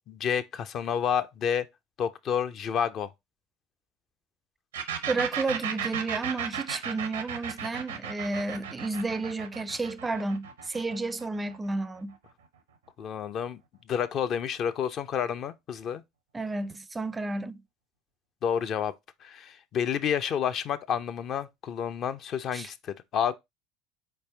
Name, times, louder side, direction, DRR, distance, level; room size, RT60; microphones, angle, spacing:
voice 1, 0.1-1.7 2.0-3.1 13.0-13.6 13.9-16.0 18.4-18.9 19.2-23.3, left 8 dB, 50° left, 0.5 m, -29 dB
sound 1, 4.7-12.3, right 8 dB, 80° right, 0.6 m, -35 dB
voice 2, 5.1-12.1 16.3-17.6 22.5-22.7, right 3 dB, 20° right, 0.4 m, -32 dB
4.3 x 3.3 x 3.2 m
hypercardioid pair, 70°, 0 cm